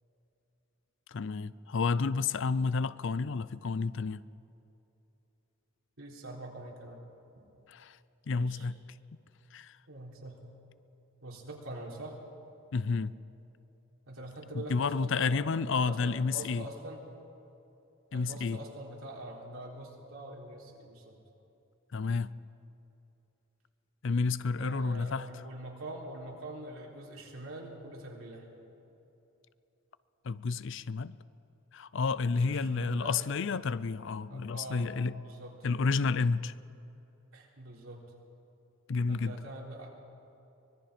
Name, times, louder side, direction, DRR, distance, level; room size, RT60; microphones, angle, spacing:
voice 1, 1.1-4.2 7.7-8.0 8.3-8.8 9.5-9.8 12.7-13.1 14.5-16.6 18.1-18.6 21.9-22.3 24.0-25.3 30.2-31.1 31.7-35.1 35.6-36.5 38.9-39.4, left 4 dB, 60° left, 0.5 m, -30 dB
voice 2, 6.0-7.0 8.4-8.7 9.9-10.6 11.2-12.2 14.1-17.1 18.1-21.2 24.6-28.5 32.3-33.2 34.3-34.9 35.2-35.5 37.3-38.0 39.1-39.9, right 1 dB, 85° right, 3.7 m, -44 dB
24.5 x 20.5 x 5.1 m
head